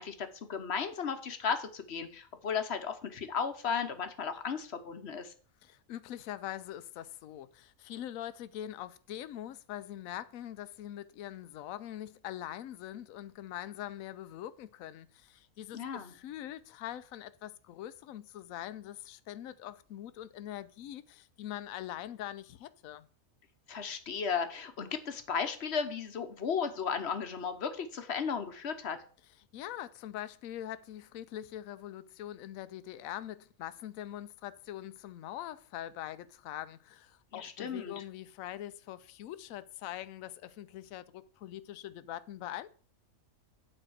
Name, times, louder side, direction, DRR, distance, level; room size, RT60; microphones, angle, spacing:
voice 1, 0.0-5.3 15.7-16.1 23.7-29.0 37.3-38.0, left 6 dB, 50° left, 1.1 m, -35 dB
voice 2, 5.6-23.1 29.5-42.7, left 12 dB, 75° left, 1.0 m, -43 dB
8.7 x 4.3 x 6.3 m
omnidirectional pair, 1.5 m